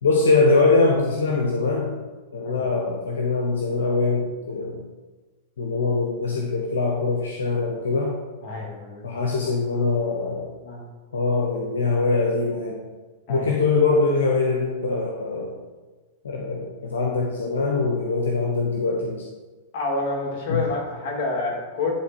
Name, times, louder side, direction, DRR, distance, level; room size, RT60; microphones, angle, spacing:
voice 1, 0.0-1.9 2.3-4.8 5.6-8.2 9.0-10.5 11.1-12.9 13.3-15.6 16.2-19.2 20.5-20.6, left 3 dB, 85° left, 0 dB, 1.0 m, -23 dB
voice 2, 8.4-9.0 10.6-10.8 13.3-13.6 19.7-21.9, left 3 dB, 55° left, -1 dB, 2.7 m, -28 dB
10.5 x 3.8 x 4.5 m, 1.3 s
hypercardioid pair, 120°, 0 cm